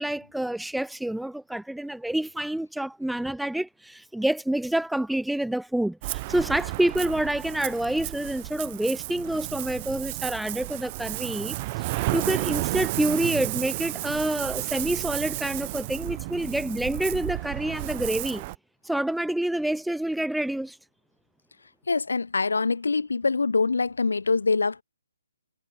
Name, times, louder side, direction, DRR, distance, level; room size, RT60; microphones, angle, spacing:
voice 1, 0.0-18.4 18.8-20.8, right 1 dB, ahead, 0.7 m, -28 dB
Ocean, 6.0-18.6, right 21 dB, 25° right, 2.6 m, -32 dB
voice 2, 21.9-24.8, left 4 dB, 65° left, 0.9 m, -24 dB
figure-of-eight pair, 135°, 0 cm